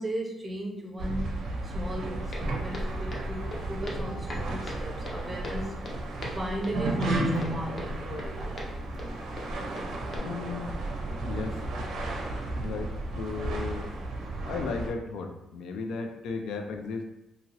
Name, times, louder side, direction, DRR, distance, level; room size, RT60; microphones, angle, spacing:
voice 1, 0.0-1.4 1.6-5.8 6.3-8.8, right 1 dB, 15° right, -1 dB, 0.5 m, -36 dB
sound 1, 1.0-14.9, right 2 dB, 80° right, 0.6 m, -33 dB
Walk footsteps, 2.3-10.2, equal, 35° left, 0.6 m, -39 dB
voice 2, 10.2-10.7 11.2-11.6 12.6-13.9 14.4-17.0, left 4 dB, 85° left, 4 dB, 0.3 m, -35 dB
2.8 x 2.7 x 2.8 m, 0.88 s
cardioid pair, 180°, 0 cm